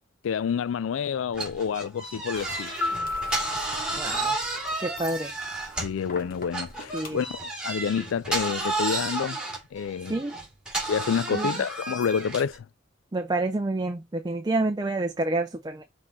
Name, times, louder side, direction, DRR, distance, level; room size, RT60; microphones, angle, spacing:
voice 1, 0.2-2.8 5.8-9.4 9.7-10.2 10.9-12.7, left 7 dB, 85° left, 0.3 m, -28 dB
sound 1, 1.3-6.1 6.5-12.6, right 2 dB, 5° right, 2.5 m, -32 dB
sound 2, 2.3-7.4, left 3 dB, 45° left, 1.3 m, -44 dB
Piano, 2.8-5.6, left 2 dB, 65° left, 0.8 m, -33 dB
voice 2, 4.0-4.4 4.8-5.3 6.9-7.2 10.1-10.3 11.3-11.5 13.1-15.8, right 2 dB, 20° right, 0.5 m, -28 dB
5.8 x 3.7 x 4.5 m
head